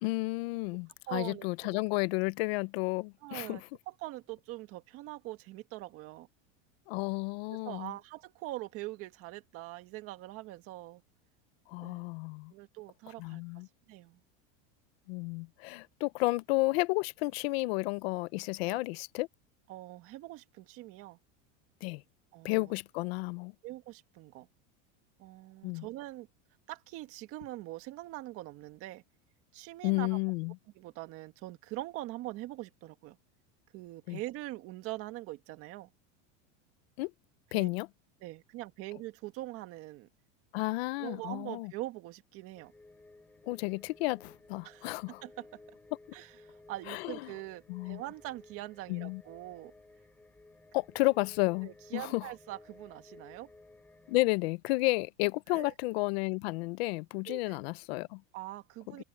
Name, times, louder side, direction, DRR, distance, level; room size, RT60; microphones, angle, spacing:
voice 1, 0.0-3.6 6.9-7.9 11.7-12.5 13.2-13.7 15.1-19.3 21.8-22.0 22.4-23.5 25.6-25.8 29.8-30.5 34.1-34.2 37.0-37.1 37.5-37.9 40.5-41.7 43.5-45.2 46.9-47.3 47.7-48.0 48.9-49.2 50.7-52.3 54.1-58.2, left 23 dB, 55° left, 0.8 m, -32 dB
voice 2, 1.1-1.5 3.2-6.3 7.5-11.0 11.8-12.0 12.5-13.4 13.9-14.2 18.7-18.8 19.7-21.2 22.3-22.7 23.6-24.5 25.2-26.3 26.7-29.0 29.5-30.2 30.8-33.2 33.7-35.9 37.5-37.7 38.2-40.1 41.0-42.7 44.6-44.9 45.2-45.6 46.1-49.7 51.6-53.5 55.5-55.7 57.3-57.6 58.3-59.0, right 17 dB, 40° right, 1.7 m, -43 dB
sound 1, 42.5-54.2, left 2 dB, 5° left, 3.5 m, -57 dB
supercardioid pair, 170°, 36 cm